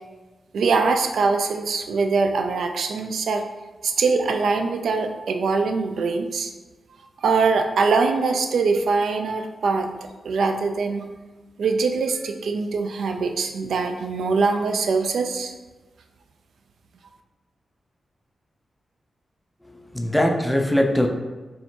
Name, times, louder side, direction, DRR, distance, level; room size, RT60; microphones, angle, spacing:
voice 1, 0.5-3.4 3.8-6.5 7.2-9.9 10.2-11.1 11.6-15.5, right 4 dB, 85° right, 5 dB, 0.3 m, -23 dB
voice 2, 19.6-21.1, left 1 dB, 5° left, 2 dB, 0.3 m, -21 dB
3.2 x 2.7 x 4.3 m, 1.2 s
wide cardioid pair, 180°, 0 cm